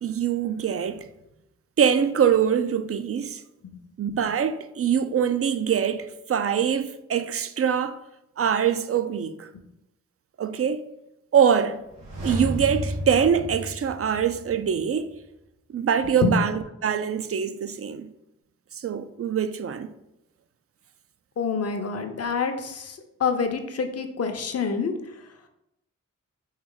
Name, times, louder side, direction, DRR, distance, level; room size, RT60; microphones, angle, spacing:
voice 1, 0.0-1.1 1.8-3.4 4.0-8.0 8.4-9.5 10.4-10.8 11.3-11.8 12.2-15.1 15.7-18.1 18.8-19.9, right 7 dB, 45° right, 0.4 m, -24 dB
sound 1, 11.8-14.8 15.0-15.1, right 1 dB, 90° right, 1.0 m, -32 dB
voice 2, 21.4-24.9, left 5 dB, 45° left, 0.6 m, -27 dB
3.1 x 3.1 x 3.8 m
cardioid pair, 40°, 34 cm